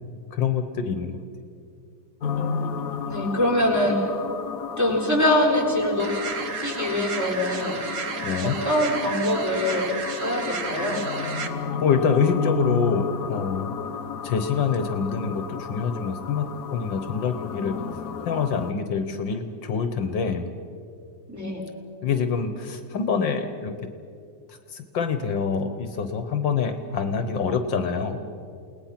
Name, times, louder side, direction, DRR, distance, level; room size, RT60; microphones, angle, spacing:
voice 1, 0.3-1.2 8.2-8.6 11.8-13.7 14.2-16.5 16.7-17.8 18.3-20.5 22.0-23.7 24.5-28.2, left 6 dB, 70° left, 8 dB, 1.8 m, -26 dB
sound 1, 2.2-18.7, left 6 dB, 50° left, 1.3 m, -32 dB
voice 2, 3.1-4.0 4.8-6.1 6.6-7.8 8.4-9.9 10.2-11.0 21.3-21.6, left 1 dB, 10° right, -2 dB, 4.2 m, -23 dB
sound 2, 6.0-11.5, right 5 dB, 45° right, 1.5 m, -33 dB
29.0 x 19.0 x 5.9 m, 2.4 s
omnidirectional pair, 2.1 m